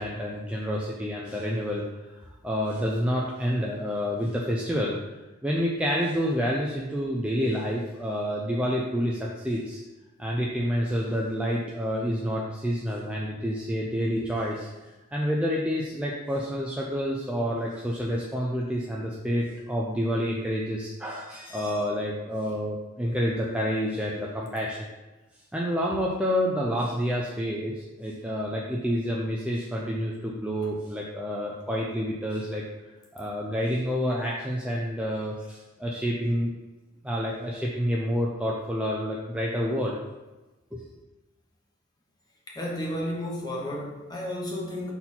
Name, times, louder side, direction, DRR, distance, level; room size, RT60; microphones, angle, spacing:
voice 1, 0.0-5.0 5.4-9.8 10.2-14.7 15.1-24.9 25.5-32.6 33.1-36.5 37.0-40.0 40.7-40.8, equal, 5° right, -3 dB, 0.4 m, -28 dB
voice 2, 42.5-44.9, left 1 dB, 20° left, -3 dB, 1.1 m, -32 dB
5.5 x 4.3 x 4.3 m, 1.1 s
head